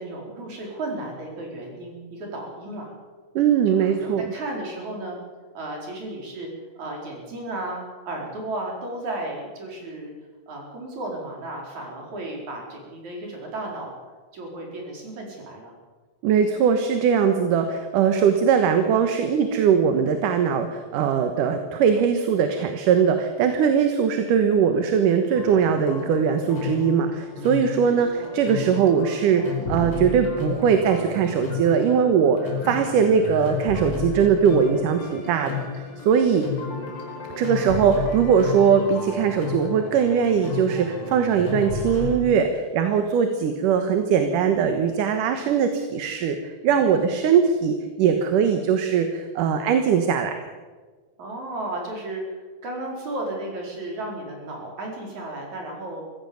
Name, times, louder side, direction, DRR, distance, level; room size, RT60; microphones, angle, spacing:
voice 1, 0.0-2.9 3.7-5.2 5.5-6.5 6.7-10.1 10.5-13.9 14.3-15.7 27.7-28.3 51.2-56.0, right 2 dB, 55° right, 0 dB, 6.0 m, -34 dB
voice 2, 3.4-4.2 16.2-32.4 32.6-36.4 37.3-50.3, right 7 dB, 70° right, 6 dB, 2.8 m, -21 dB
sound 1, 25.3-42.2, left 5 dB, 35° left, 5.3 m, -33 dB
24.0 x 16.0 x 7.1 m, 1.4 s
omnidirectional pair, 3.9 m